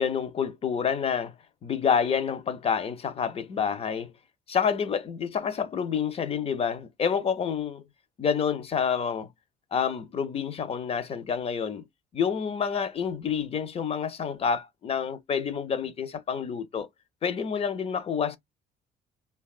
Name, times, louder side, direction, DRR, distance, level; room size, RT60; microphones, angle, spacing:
voice 1, 0.0-1.3 1.6-4.1 4.5-7.8 8.2-9.3 9.7-11.8 12.1-16.9 17.2-18.4, left 7 dB, 35° left, 0.4 m, -28 dB
2.7 x 2.2 x 2.3 m
cardioid pair, 110°, 17 cm